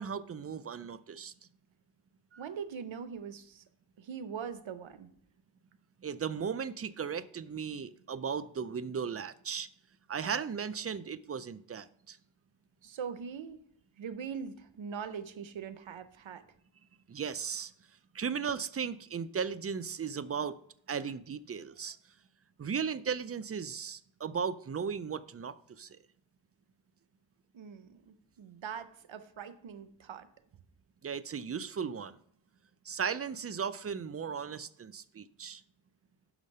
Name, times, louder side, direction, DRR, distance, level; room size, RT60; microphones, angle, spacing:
voice 1, 0.0-1.3 6.0-9.7 10.1-12.2 17.1-17.7 18.1-20.6 20.9-22.0 22.6-26.0 31.0-32.2 32.8-35.6, right 6 dB, 35° right, 14 dB, 0.4 m, -36 dB
voice 2, 2.3-3.6 4.0-5.1 12.8-13.6 14.0-16.4 27.5-30.3, right 7 dB, 80° right, 12 dB, 0.7 m, -42 dB
6.5 x 5.0 x 5.3 m, 0.64 s
wide cardioid pair, 65°, 46 cm